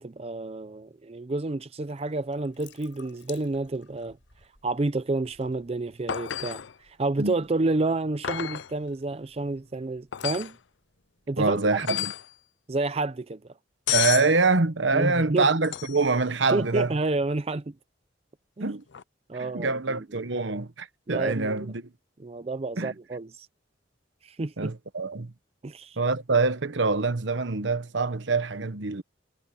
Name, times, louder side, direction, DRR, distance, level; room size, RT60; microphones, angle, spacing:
voice 1, 0.0-4.2 4.6-10.6 11.3-11.6 11.9-12.0 12.7-13.4 14.9-15.5 16.5-17.7 18.6-18.8 19.3-20.0 21.1-21.7 22.2-23.5 24.2-24.7 25.6-26.0, right 2 dB, 35° right, 0.5 m, -29 dB
Water tap faucet / Sink (filling or washing) / Drip, 1.9-11.7, left 8 dB, 85° left, 6.6 m, -57 dB
wrenches thrown or dropped, 6.1-6.7 8.2-8.7 10.1-10.5 11.8-12.3 13.9-14.3 15.6-16.1 18.9-19.0, left 12 dB, 70° left, 0.5 m, -30 dB
voice 2, 11.4-12.1 13.9-16.9 18.6-18.8 19.4-21.9 22.8-22.9 24.6-25.3 26.0-29.0, right 3 dB, 75° right, 1.2 m, -25 dB
head